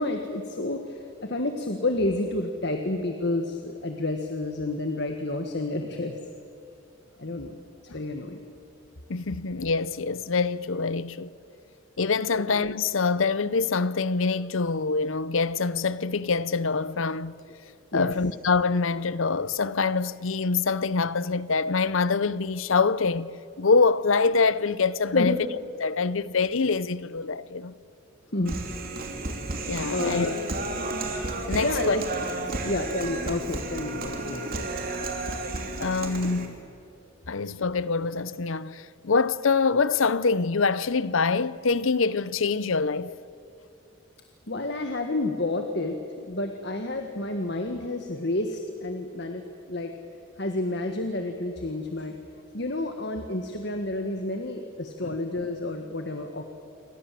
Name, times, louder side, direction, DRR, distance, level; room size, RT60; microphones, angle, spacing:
voice 1, 0.0-6.2 7.2-7.6 7.9-8.4 12.3-12.4 17.9-18.1 25.1-25.4 28.3-28.6 29.7-30.4 31.5-32.0 32.6-34.8 44.5-49.9 50.4-52.1 52.5-56.5, left 2 dB, 55° left, 1.7 m, -30 dB
voice 2, 9.1-11.3 12.0-17.4 17.9-23.3 23.6-25.4 25.8-27.7 29.7-30.3 31.5-32.0 32.5-32.6 35.8-36.6 37.3-43.1 55.0-55.2, left 4 dB, 75° left, 0.7 m, -25 dB
Human voice, 28.5-36.5, right 2 dB, 45° right, 3.3 m, -32 dB
28.0 x 24.5 x 7.6 m
head